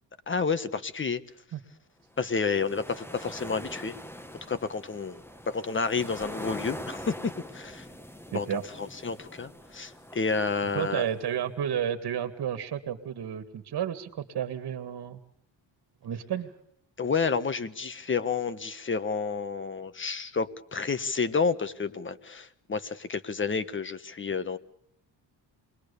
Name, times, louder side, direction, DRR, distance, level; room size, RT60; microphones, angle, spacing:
voice 1, 0.3-1.2 2.2-3.9 4.5-7.9 8.3-8.5 8.8-11.1 17.0-24.6, left 5 dB, 30° left, 12 dB, 1.5 m, -30 dB
sound 1, 2.2-11.4, equal, 5° left, 1.6 m, -43 dB
voice 2, 8.3-8.6 10.7-15.2 16.0-16.5, right 9 dB, 60° right, 8 dB, 1.9 m, -31 dB
28.5 x 21.5 x 6.9 m, 0.69 s
cardioid pair, 110°, 42 cm